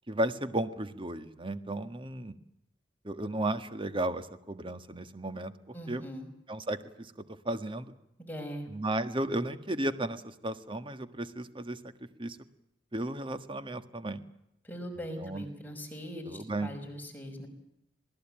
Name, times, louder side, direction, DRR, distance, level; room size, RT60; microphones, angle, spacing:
voice 1, 0.1-2.4 3.0-6.0 6.5-7.9 8.7-12.4 12.9-14.2 15.2-15.4 16.2-16.7, right 1 dB, 30° right, 10 dB, 1.6 m, -34 dB
voice 2, 5.7-6.3 8.2-8.7 14.6-17.5, equal, 10° left, 3 dB, 5.7 m, -41 dB
27.0 x 20.0 x 8.9 m, 0.81 s
head